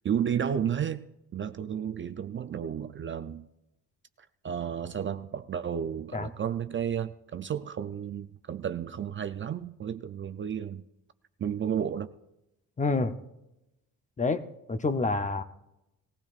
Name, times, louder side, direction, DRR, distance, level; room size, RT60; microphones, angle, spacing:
voice 1, 0.0-1.1 1.3-3.5 4.4-10.8 11.4-12.1, right 8 dB, 35° right, 0.4 m, -32 dB
voice 2, 12.8-13.1 14.2-15.4, left 3 dB, 20° left, 0.7 m, -28 dB
19.5 x 15.5 x 2.4 m
cardioid pair, 110°, 33 cm